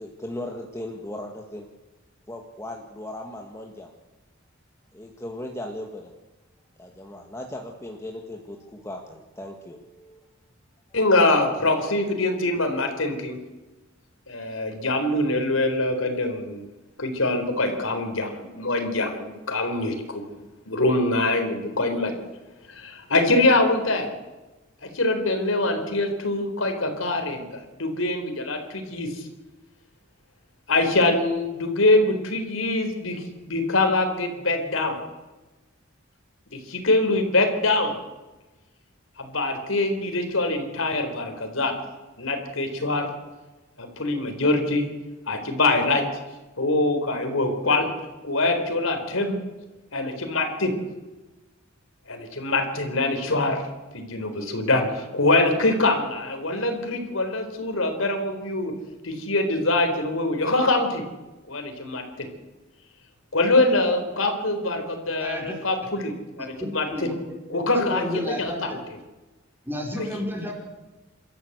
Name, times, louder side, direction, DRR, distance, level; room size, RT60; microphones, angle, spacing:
voice 1, 0.0-1.7 2.3-3.9 4.9-6.1 6.8-10.2, left 1 dB, 15° left, 1 dB, 1.8 m, -37 dB
voice 2, 10.9-13.4 14.3-16.7 17.0-20.2 20.7-22.1 22.7-24.1 24.9-29.2 30.7-35.0 36.5-38.0 39.2-41.8 42.2-43.1 43.8-44.9 45.3-46.0 46.6-47.9 48.2-49.4 49.9-50.7 52.1-53.6 53.9-58.7 59.0-61.0 61.5-62.3 63.3-66.1 66.4-67.1 67.5-68.8 70.0-70.1, left 2 dB, 85° left, 5 dB, 4.1 m, -24 dB
voice 3, 65.2-65.5 66.4-67.1 67.8-68.8 69.7-70.5, equal, 10° right, 0 dB, 4.8 m, -31 dB
26.5 x 13.5 x 8.1 m, 1.1 s
head